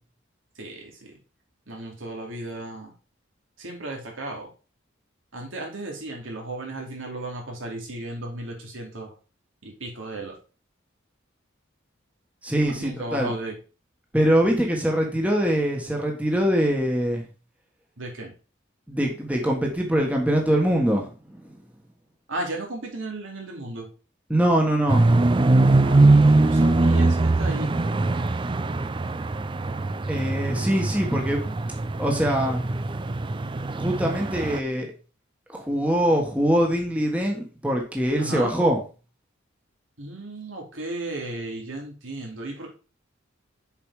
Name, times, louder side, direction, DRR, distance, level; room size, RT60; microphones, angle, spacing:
voice 1, 0.6-1.1 1.7-2.9 3.6-4.5 5.3-9.1 9.6-10.3 12.7-13.6 18.0-18.3 22.3-23.9 25.8-27.8 30.4-30.6 38.2-38.5 40.0-42.7, right 2 dB, 75° right, 0 dB, 2.7 m, -35 dB
voice 2, 12.4-13.3 14.1-17.2 18.9-21.5 24.3-25.1 30.1-31.4 32.0-32.6 33.8-34.9 35.5-38.8, equal, 5° right, 0 dB, 1.4 m, -23 dB
sound 1, 24.9-34.6, right 2 dB, 25° right, 0.4 m, -21 dB
7.1 x 4.9 x 4.9 m, 0.34 s
head